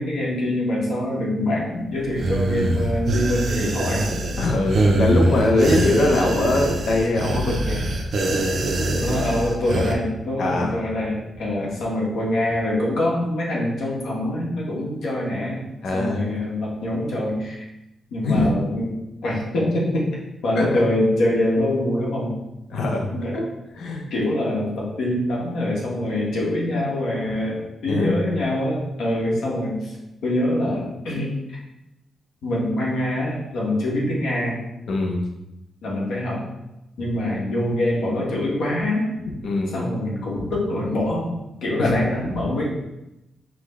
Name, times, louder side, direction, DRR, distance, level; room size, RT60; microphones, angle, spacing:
voice 1, 0.0-4.1 5.2-5.8 9.0-15.6 15.9-17.6 18.1-18.9 19.2-22.3 23.1-23.4 24.1-29.9 30.2-31.6 32.4-34.6 35.8-36.4 37.0-39.1 39.7-41.3 41.6-42.7, left 1 dB, 75° left, -4 dB, 1.2 m, -24 dB
sound 1, 2.2-9.9, right 1 dB, 45° right, 0.5 m, -23 dB
voice 2, 4.4-7.9 10.4-10.7 11.6-11.7 15.8-16.3 18.2-18.5 20.6-20.8 22.7-23.5 23.8-24.1 27.9-28.2 34.9-35.3 39.3-39.9 41.8-42.0, left 2 dB, 60° left, 1 dB, 0.7 m, -22 dB
5.0 x 2.2 x 3.6 m, 0.91 s
wide cardioid pair, 180°, 0 cm